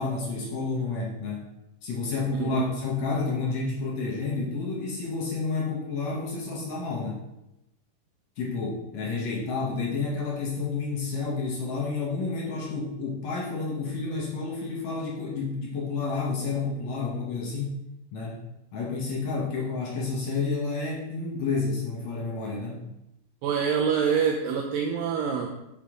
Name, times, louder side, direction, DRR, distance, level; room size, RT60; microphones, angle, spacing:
voice 1, 0.0-1.4 1.8-7.2 8.4-17.8 18.1-18.4 18.7-22.9, left 4 dB, 65° left, -3 dB, 2.0 m, -30 dB
voice 2, 23.4-25.5, right 7 dB, 80° right, 1 dB, 2.3 m, -25 dB
6.6 x 5.7 x 3.7 m, 0.89 s
omnidirectional pair, 4.2 m